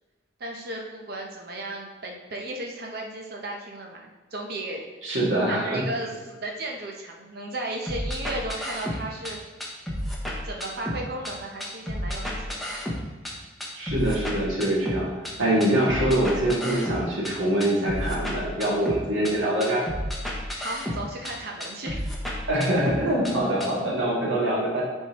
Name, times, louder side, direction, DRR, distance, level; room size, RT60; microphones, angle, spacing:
voice 1, 0.4-4.8 5.5-9.4 10.4-12.8 20.5-22.0, right 1 dB, 50° right, 0 dB, 0.8 m, -35 dB
voice 2, 5.0-5.8 13.7-15.1 15.4-19.8 22.5-24.8, right 1 dB, 80° right, -5 dB, 2.3 m, -24 dB
sound 1, 7.9-9.3 9.6-11.3 11.6-13.3 13.6-15.3 15.6-17.3 17.6-19.3 19.6-21.3 21.6-23.3 23.6-23.7, equal, ahead, 0.9 m, -31 dB
10.5 x 4.5 x 3.0 m, 1.3 s
head